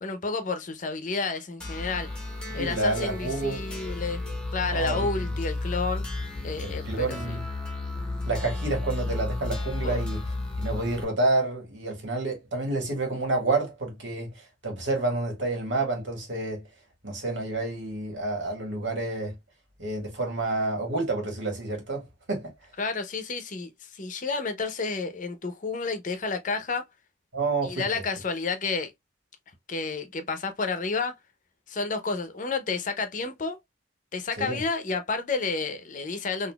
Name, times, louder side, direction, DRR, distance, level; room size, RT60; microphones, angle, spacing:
voice 1, 0.0-2.1 2.5-4.2 4.5-6.0 6.4-7.4 9.8-10.0 22.8-26.9 27.6-28.9 29.7-31.2 31.7-33.6 34.1-36.5, left 4 dB, 45° left, 0.6 m, -30 dB
sound 1, 1.6-11.0, left 2 dB, 5° left, 0.8 m, -33 dB
voice 2, 2.5-3.6 4.7-5.1 6.6-7.4 8.3-10.2 10.6-14.3 14.6-16.6 17.0-19.3 19.8-22.5 27.3-27.9 34.4-34.6, right 2 dB, 85° right, 1.6 m, -29 dB
4.0 x 2.5 x 2.2 m
head